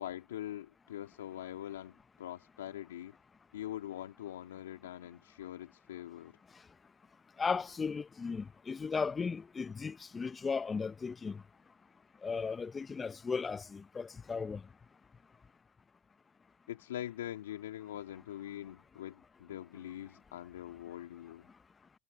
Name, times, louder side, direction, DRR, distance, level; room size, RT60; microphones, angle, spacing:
voice 1, 0.0-3.1 3.5-6.4 16.7-21.5, left 12 dB, 90° left, 2.4 m, -43 dB
voice 2, 7.4-11.4 12.2-14.6, left 5 dB, 25° left, 0.8 m, -36 dB
hypercardioid pair, 95°, 0 cm